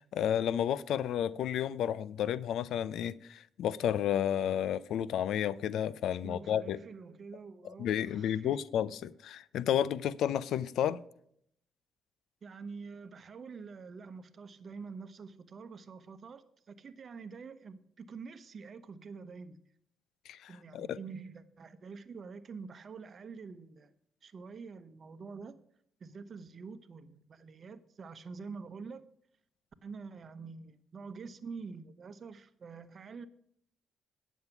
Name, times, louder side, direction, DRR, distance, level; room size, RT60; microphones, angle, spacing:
voice 1, 0.0-6.8 7.6-11.0 20.3-21.0, left 10 dB, 75° left, 0.4 m, -32 dB
voice 2, 6.2-8.6 12.4-19.6 20.5-23.9 24.2-25.6 26.0-29.0 29.8-33.3, right 5 dB, 50° right, 0.9 m, -46 dB
9.5 x 7.2 x 5.8 m
supercardioid pair, 70°, 0 cm